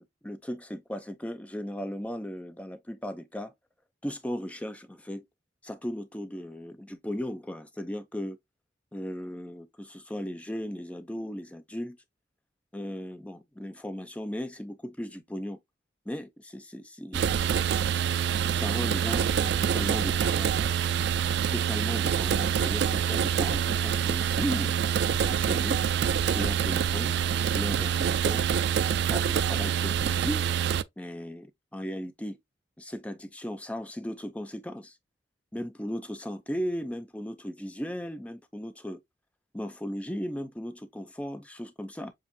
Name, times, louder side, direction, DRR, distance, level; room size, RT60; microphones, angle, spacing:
voice 1, 0.0-3.5 4.0-5.3 5.6-8.4 8.9-12.0 12.7-15.6 16.1-17.3 18.5-20.5 21.5-24.8 25.2-25.8 26.3-27.1 27.4-28.5 29.1-30.5 31.0-32.4 32.8-35.0 35.5-39.0 39.5-42.1, equal, 5° left, 0.5 m, -36 dB
sound 1, 17.1-30.8, right 8 dB, 60° right, 0.3 m, -26 dB
7.2 x 2.5 x 2.7 m
head